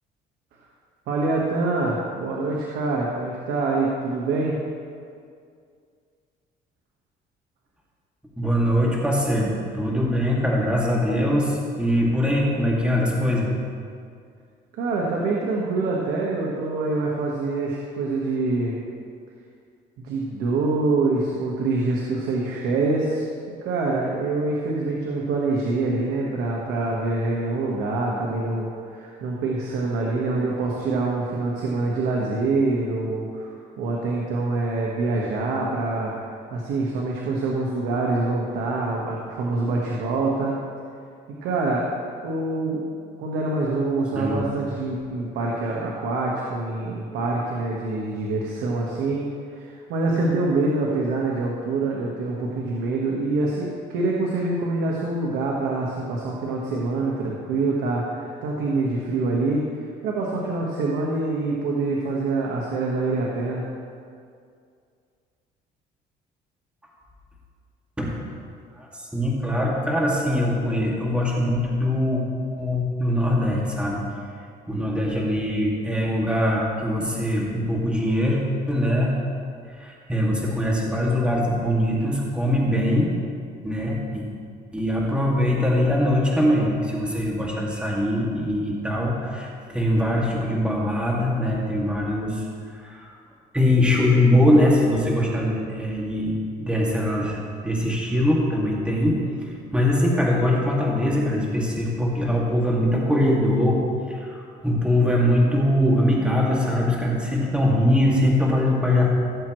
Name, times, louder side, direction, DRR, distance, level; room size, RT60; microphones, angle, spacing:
voice 1, 1.1-4.6 14.8-18.8 20.0-23.2 23.6-36.1 36.5-40.5 41.4-41.9 42.2-42.8 43.2-59.7 60.0-63.6, right 3 dB, 85° right, -3 dB, 1.4 m, -25 dB
voice 2, 8.4-13.5 44.1-44.4 68.0-68.2 68.8-72.2 72.6-74.0 74.7-78.4 78.7-79.1 79.7-83.1 83.6-84.3 84.7-92.4 92.7-93.1 93.5-103.8 104.1-109.1, left 1 dB, 5° right, -4 dB, 2.3 m, -22 dB
16.5 x 7.5 x 3.2 m, 2.3 s
cardioid pair, 110°, 17 cm